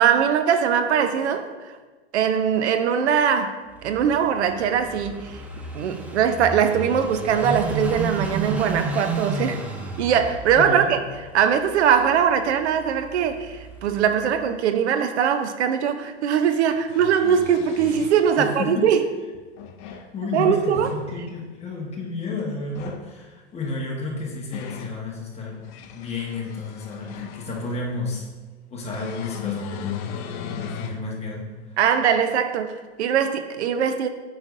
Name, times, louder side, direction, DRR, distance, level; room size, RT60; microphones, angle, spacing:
voice 1, 0.0-1.7 2.1-5.4 5.7-9.6 10.0-11.0 11.3-19.0 20.3-20.9 31.8-34.1, right 8 dB, 85° right, 9 dB, 0.6 m, -21 dB
Car passing by / Idling, 3.7-14.4, right 2 dB, 5° right, 0.4 m, -33 dB
voice 2, 10.5-10.9 18.4-18.9 19.8-25.6 25.9-28.3 28.7-31.5, left 3 dB, 20° left, -2 dB, 1.2 m, -31 dB
sound 1, 15.7-15.8 16.7-18.3 19.3-20.1 20.5-21.0 22.6-23.1 24.0-25.0 25.5-27.7 28.9-31.0 31.6-31.7 33.2-33.3, left 9 dB, 40° left, 0.6 m, -37 dB
7.4 x 5.1 x 2.5 m, 1.3 s
hypercardioid pair, 125°, 33 cm